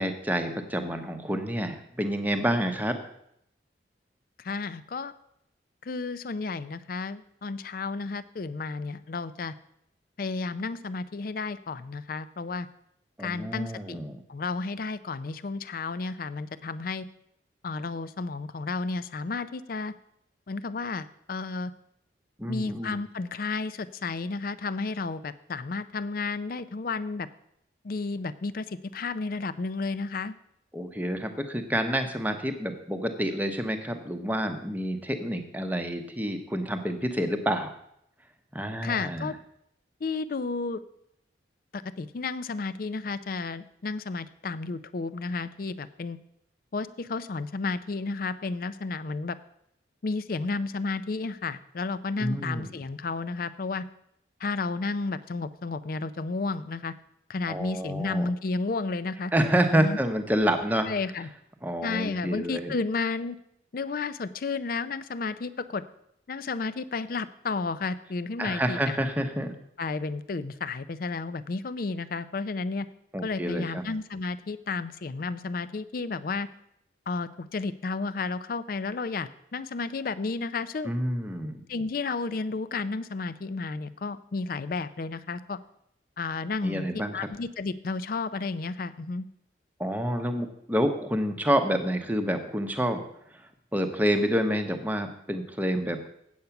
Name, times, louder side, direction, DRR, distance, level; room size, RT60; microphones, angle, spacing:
voice 1, 0.0-3.0 13.2-14.2 22.4-22.9 30.7-37.7 38.5-39.3 52.2-52.7 57.5-58.3 59.3-60.9 61.6-62.7 68.4-69.5 73.1-73.8 80.8-81.6 86.6-87.3 89.8-93.0 93.7-96.1, equal, 10° right, 6 dB, 0.8 m, -28 dB
voice 2, 4.4-5.1 5.8-9.5 10.2-12.7 13.2-14.0 14.3-17.0 17.6-19.9 20.5-21.7 22.5-27.3 27.8-30.3 38.8-39.3 40.0-40.8 41.7-46.2 46.7-49.4 50.0-53.8 54.4-56.9 57.3-59.3 59.7-60.0 60.9-61.3 61.8-63.4 63.7-65.8 66.3-69.0 69.8-72.9 73.2-76.5 77.1-80.9 81.7-85.6 86.2-86.9 87.1-89.3, left 4 dB, 50° left, 15 dB, 0.4 m, -32 dB
8.3 x 7.9 x 5.8 m, 0.75 s
head